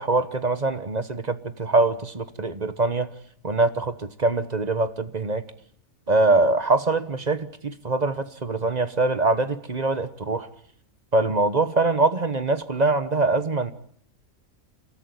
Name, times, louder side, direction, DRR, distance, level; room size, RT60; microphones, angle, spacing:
voice 1, 0.0-3.1 3.4-5.4 6.1-10.5 11.1-13.7, right 3 dB, 30° right, 12 dB, 1.2 m, -23 dB
29.0 x 13.5 x 9.7 m, 0.66 s
omnidirectional pair, 1.4 m